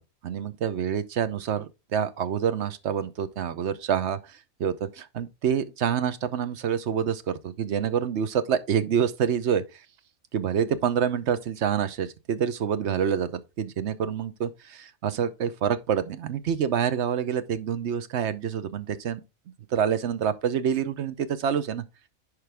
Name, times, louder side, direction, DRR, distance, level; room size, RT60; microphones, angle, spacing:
voice 1, 0.2-9.8 10.3-13.3 13.6-19.2 19.7-21.8, right 8 dB, 60° right, 1.0 m, -27 dB
11.0 x 4.9 x 3.4 m
omnidirectional pair, 1.4 m